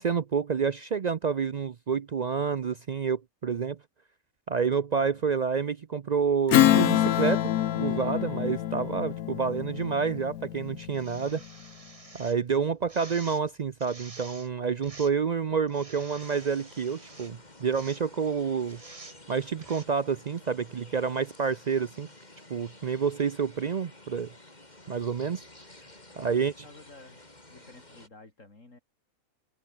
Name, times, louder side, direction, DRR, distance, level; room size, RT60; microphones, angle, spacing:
voice 1, 0.0-3.8 4.5-7.4 7.8-11.4 12.1-18.8 19.3-22.1 22.5-24.3 24.9-25.4 26.2-26.5, right 6 dB, 65° right, 0.4 m, -28 dB
voice 2, 4.9-5.3 26.1-27.2 27.5-28.8, left 2 dB, 60° left, 4.1 m, -52 dB
Strum, 6.5-11.4, left 12 dB, 85° left, 1.2 m, -26 dB
sound 1, 9.8-9.9 10.8-12.4 12.8-13.5 13.8-14.5 14.8-15.2 15.7-17.3 17.7-18.0 18.7-19.2 19.6-19.8, right 3 dB, 25° right, 1.8 m, -49 dB
sound 2, 16.2-28.1, left 2 dB, 30° left, 4.0 m, -52 dB
omnidirectional pair, 1.5 m